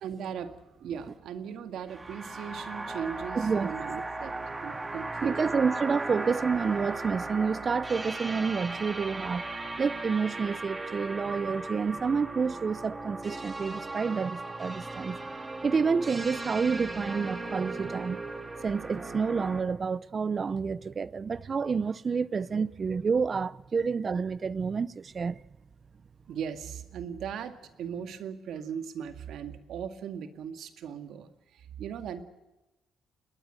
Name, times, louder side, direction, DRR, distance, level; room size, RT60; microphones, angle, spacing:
voice 1, 0.0-4.4 4.6-5.5 26.3-32.2, right 8 dB, 75° right, 2.0 m, -38 dB
sound 1, 1.9-19.6, right 2 dB, 20° right, 2.7 m, -37 dB
voice 2, 3.4-3.7 5.2-9.5 9.8-15.2 15.6-18.2 18.6-25.4, right 5 dB, 40° right, 0.7 m, -29 dB
20.5 x 20.0 x 7.8 m
cardioid pair, 90°, 0 cm